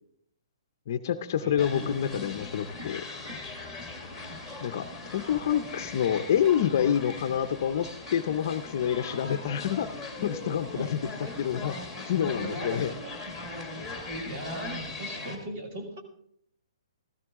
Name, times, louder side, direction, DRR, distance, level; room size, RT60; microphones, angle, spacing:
voice 1, 0.9-3.0 4.6-4.8 5.1-11.0 11.4-11.8 12.0-12.9, left 9 dB, 35° left, 9 dB, 0.5 m, -27 dB
voice 2, 1.4-2.3 10.7-11.2 12.1-13.2 13.7-16.0, right 1 dB, 30° right, 5 dB, 1.9 m, -40 dB
sound 1, 1.6-15.4, left 3 dB, 5° right, 1.3 m, -39 dB
14.0 x 13.5 x 3.6 m, 0.68 s
hypercardioid pair, 180°, 3 cm